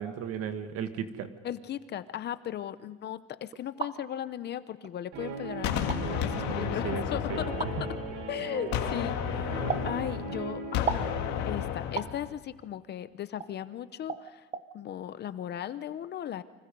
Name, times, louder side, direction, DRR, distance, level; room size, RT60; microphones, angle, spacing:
voice 1, 0.0-1.3 6.4-7.0 7.3-7.4, right 8 dB, 55° right, 9 dB, 1.7 m, -35 dB
voice 2, 1.4-8.0 8.3-11.1 11.5-14.5 14.7-16.4, left 10 dB, 35° left, 14 dB, 0.7 m, -37 dB
sound 1, 3.5-4.0 4.8-4.9 5.8-6.0 7.6-7.7 9.7-9.9 10.9-11.1 12.0-12.2 13.4-13.5 14.1-14.2 14.5-14.7, right 6 dB, 25° right, 0.8 m, -33 dB
Guitar, 5.1-11.7, right 4 dB, 85° right, 4.2 m, -39 dB
Gunshot gunfire, 5.6-8.3 8.7-12.3, left 9 dB, 70° left, 2.2 m, -32 dB
29.5 x 25.5 x 5.3 m, 1.2 s
cardioid pair, 160°, 29 cm